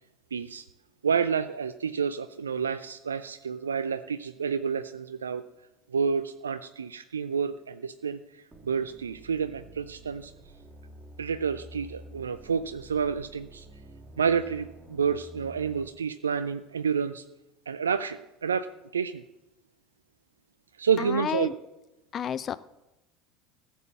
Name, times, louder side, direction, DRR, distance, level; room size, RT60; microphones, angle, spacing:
voice 1, 0.3-0.6 1.0-5.4 5.9-10.3 11.2-13.7 14.2-17.2 17.7-18.7 18.9-19.2 20.8-21.5, right 6 dB, 80° right, 12 dB, 0.4 m, -29 dB
sound 1, 8.5-15.9, right 1 dB, 15° right, 2.3 m, -49 dB
voice 2, 21.0-21.5 22.1-22.6, left 8 dB, 35° left, 16 dB, 0.5 m, -30 dB
14.5 x 7.3 x 7.5 m, 0.98 s
figure-of-eight pair, 70°, 0 cm